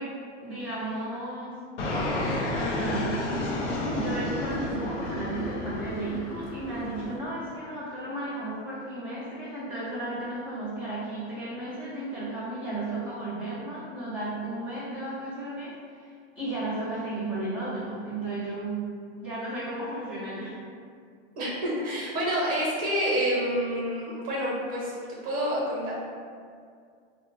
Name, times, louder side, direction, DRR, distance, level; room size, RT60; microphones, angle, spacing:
voice 1, 0.0-1.6 2.5-3.4 3.9-18.9 19.2-20.6, right 2 dB, 15° left, -12 dB, 0.3 m, -34 dB
Fixed-wing aircraft airplane, 1.8-7.2, left 1 dB, 80° left, 0.6 m, -31 dB
voice 2, 21.4-24.9 25.2-25.9, equal, 25° right, -5 dB, 0.6 m, -28 dB
2.1 x 2.1 x 3.0 m, 2.2 s
hypercardioid pair, 135°, 34 cm